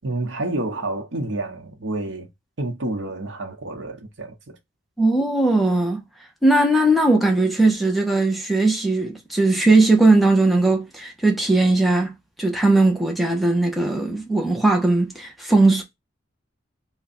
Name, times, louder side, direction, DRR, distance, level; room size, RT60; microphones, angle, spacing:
voice 1, 0.0-2.3 2.6-4.6, right 2 dB, 70° right, 0.9 m, -29 dB
voice 2, 5.0-6.0 6.4-12.1 12.4-15.8, right 2 dB, ahead, 0.7 m, -18 dB
3.5 x 2.3 x 4.1 m
head